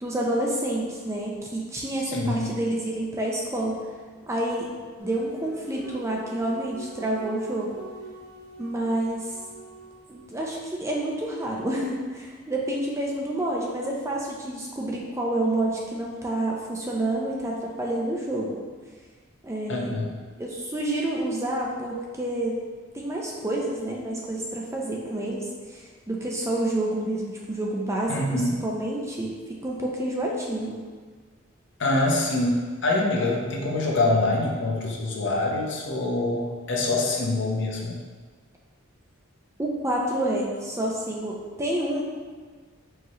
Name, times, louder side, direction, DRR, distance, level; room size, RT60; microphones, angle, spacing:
voice 1, 0.0-3.8 4.3-4.7 5.0-7.8 8.6-9.3 10.1-18.6 19.4-20.0 20.4-22.5 22.9-29.3 29.6-30.8 39.6-42.0, right 1 dB, 15° right, -2 dB, 0.4 m, -28 dB
voice 2, 2.1-2.5 19.7-20.1 28.1-28.5 31.8-38.0, left 2 dB, 60° left, -2 dB, 0.7 m, -25 dB
sound 1, 5.0-10.2, right 2 dB, 60° right, 0.9 m, -44 dB
4.7 x 2.8 x 3.0 m, 1.5 s
head